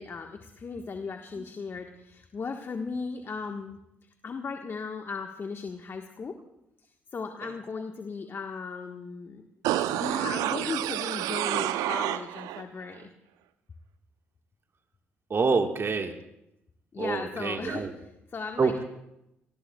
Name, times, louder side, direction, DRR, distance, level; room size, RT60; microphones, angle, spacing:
voice 1, 0.0-3.8 4.2-6.4 7.1-9.4 9.9-13.1 16.9-18.8, left 4 dB, 40° left, 4 dB, 1.4 m, -37 dB
sound 1, 9.6-12.6 13.0-13.1, right 13 dB, 70° right, 0.6 m, -29 dB
voice 2, 15.3-16.1 17.0-17.9 18.6-18.8, right 4 dB, 40° right, 5 dB, 1.5 m, -26 dB
29.0 x 19.5 x 2.3 m, 0.85 s
hypercardioid pair, 50°, 6 cm